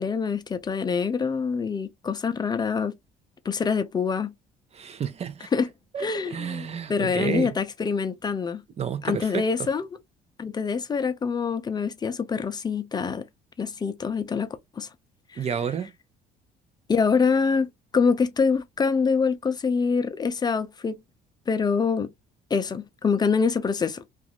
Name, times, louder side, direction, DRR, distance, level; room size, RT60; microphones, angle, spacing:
voice 1, 0.0-2.9 3.4-4.3 5.5-5.7 6.0-8.6 9.0-9.9 10.4-13.3 13.6-14.9 15.3-15.5 16.9-21.0 21.5-22.1 22.5-24.0, left 5 dB, 25° left, 0.5 m, -25 dB
voice 2, 4.7-5.5 5.9-7.5 8.8-9.7 15.4-15.9, right 7 dB, 40° right, 0.6 m, -30 dB
2.6 x 2.3 x 2.9 m
cardioid pair, 110°, 17 cm